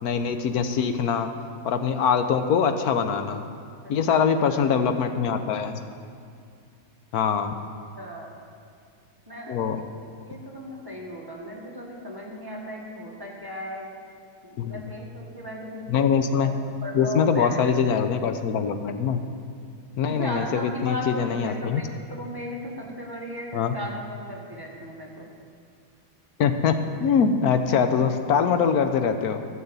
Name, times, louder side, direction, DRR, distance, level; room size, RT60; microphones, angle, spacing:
voice 1, 0.0-1.3 1.6-3.4 3.9-5.8 7.1-7.5 9.5-9.8 14.6-14.9 15.9-16.5 16.9-19.2 20.0-21.8 23.5-23.8 26.4-26.8 27.0-29.5, left 6 dB, 65° left, 8 dB, 1.1 m, -23 dB
voice 2, 3.8-4.5 7.9-8.3 9.3-9.6 10.2-13.9 14.4-16.5 16.8-17.8 20.0-25.3, left 1 dB, 10° right, -4 dB, 1.7 m, -36 dB
12.5 x 7.1 x 8.1 m, 2.3 s
omnidirectional pair, 2.0 m